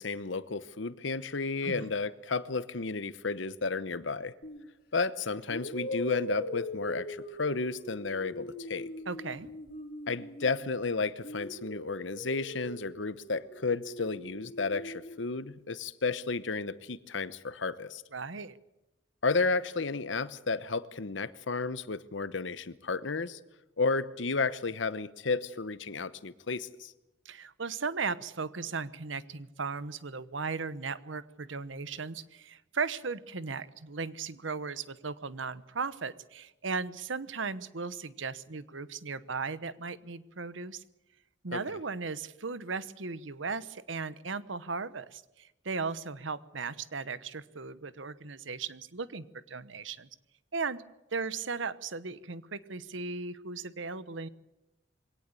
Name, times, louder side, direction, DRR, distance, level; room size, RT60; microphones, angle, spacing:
voice 1, 0.0-4.3 4.9-8.9 10.1-18.0 19.2-23.4 23.8-26.9 41.5-41.6, left 4 dB, 80° left, 16 dB, 1.0 m, -32 dB
sound 1, 4.4-4.7 5.5-10.8 11.2-15.2, left 1 dB, 50° left, 3.4 m, -41 dB
voice 2, 9.1-9.5 18.1-18.6 27.2-40.8 41.4-50.1 50.5-50.8 51.1-54.3, right 4 dB, 85° right, 16 dB, 1.1 m, -37 dB
22.5 x 18.0 x 8.4 m, 0.94 s
head